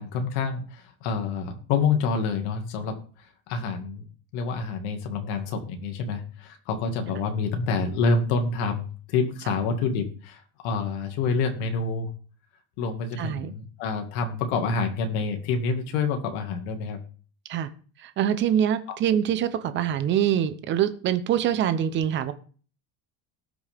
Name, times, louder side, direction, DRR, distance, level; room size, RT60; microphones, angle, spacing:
voice 1, 0.0-4.0 4.3-12.1 12.8-17.0 18.9-19.0, left 4 dB, 75° left, 5 dB, 2.1 m, -27 dB
voice 2, 13.2-13.5 17.5-17.7 18.0-22.3, right 10 dB, 30° right, 11 dB, 0.8 m, -24 dB
19.0 x 6.3 x 3.6 m, 0.40 s
cardioid pair, 170°, 36 cm